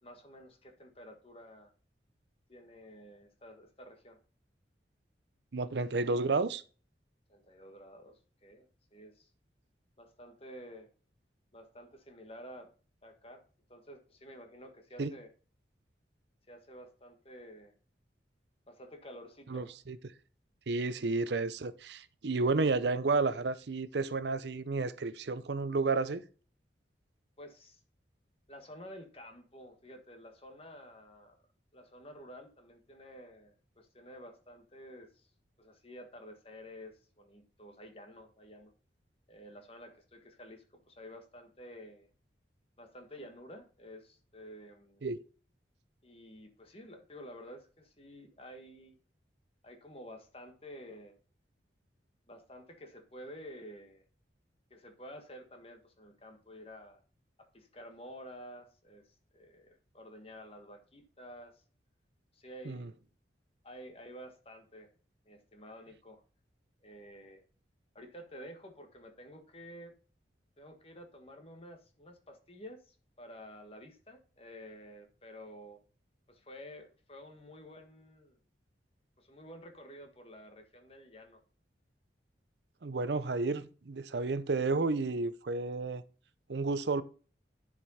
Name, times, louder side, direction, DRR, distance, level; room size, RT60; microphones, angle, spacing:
voice 1, 0.0-1.7 2.5-4.2 7.3-9.3 10.0-10.9 11.5-12.7 13.0-13.4 13.7-15.3 16.5-17.7 18.7-19.7 27.4-27.8 28.5-31.4 31.7-35.3 35.6-38.7 39.3-42.1 42.8-45.0 46.0-49.0 49.6-51.2 52.3-54.1 54.7-57.0 57.4-61.6 62.3-62.9 63.6-64.9 65.2-66.2 66.8-67.4 67.9-69.9 70.6-75.8 76.3-78.4 79.2-81.4, equal, 30° left, 1.5 m, -51 dB
voice 2, 5.5-6.6 15.0-15.1 19.5-20.1 20.7-26.2 45.0-45.2 62.7-62.9 82.8-86.0 86.5-87.0, right 3 dB, 70° right, 0.6 m, -31 dB
10.5 x 5.2 x 4.2 m
head